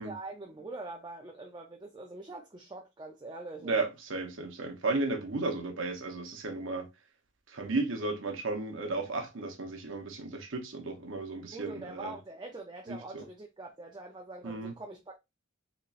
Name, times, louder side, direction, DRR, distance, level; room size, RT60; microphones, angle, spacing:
voice 1, 0.0-3.8 11.5-15.2, right 2 dB, 20° right, 0.5 m, -44 dB
voice 2, 3.6-6.9 7.5-12.1 12.9-13.2 14.4-14.7, right 3 dB, 65° right, 0.8 m, -34 dB
4.1 x 3.0 x 2.4 m
head